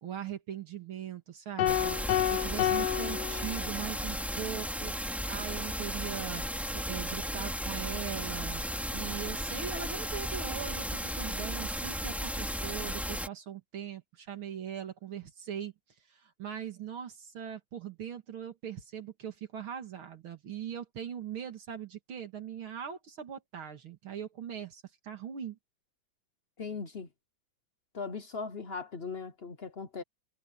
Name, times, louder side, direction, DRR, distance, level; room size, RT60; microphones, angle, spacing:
voice 1, 0.0-2.0 2.3-25.6, right 9 dB, 80° right, 2.8 m, -41 dB
sound 1, 1.6-4.1, left 11 dB, 75° left, 0.9 m, -30 dB
sound 2, 1.7-13.3, equal, ahead, 3.7 m, -35 dB
voice 2, 26.6-27.1 27.9-30.0, left 5 dB, 45° left, 0.8 m, -39 dB
omnidirectional pair, 2.3 m